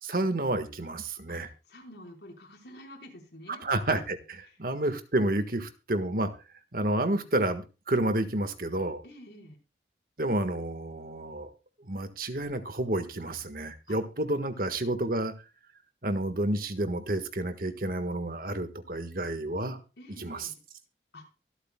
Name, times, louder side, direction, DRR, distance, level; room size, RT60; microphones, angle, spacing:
voice 1, 0.0-1.5 3.5-6.3 6.7-9.0 10.2-11.5 11.8-15.3 16.0-19.8 20.2-20.5, right 1 dB, 50° right, 9 dB, 1.6 m, -30 dB
voice 2, 1.7-3.6 4.4-4.6 9.0-9.6 13.9-14.0 14.5-14.9 20.0-20.6 21.1-21.2, left 1 dB, 70° left, 1 dB, 4.6 m, -49 dB
24.0 x 8.2 x 2.3 m, 0.31 s
head